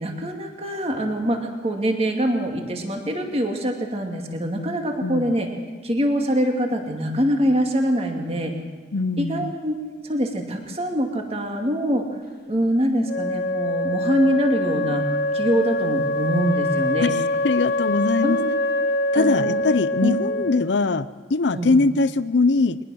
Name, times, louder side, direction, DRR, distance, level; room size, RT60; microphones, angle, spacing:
voice 1, 0.0-5.5 5.8-8.5 9.2-12.0 12.5-15.1 15.3-17.1 18.2-18.5 19.1-19.6 20.0-20.1 21.5-21.7, equal, 35° right, 3 dB, 2.3 m, -24 dB
voice 2, 5.0-5.3 8.9-9.5 17.0-17.1 17.4-18.4 19.1-22.8, left 3 dB, 85° left, 15 dB, 0.6 m, -21 dB
Wind instrument woodwind instrument, 13.1-20.8, left 1 dB, 60° left, 1.6 m, -24 dB
22.0 x 20.5 x 6.4 m, 1.5 s
head